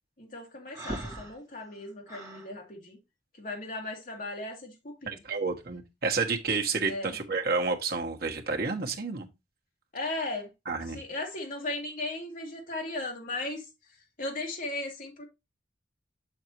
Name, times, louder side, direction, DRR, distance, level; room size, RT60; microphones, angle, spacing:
voice 1, 0.2-3.0 3.4-5.2 6.8-7.2 9.9-10.5 10.9-13.7 14.2-15.2, left 2 dB, 45° left, 2.0 m, -36 dB
Breathing, 0.7-2.5, right 1 dB, 20° right, 2.0 m, -40 dB
voice 2, 5.1-9.3 10.7-11.0, right 4 dB, 55° right, 1.3 m, -30 dB
6.9 x 6.5 x 3.0 m
head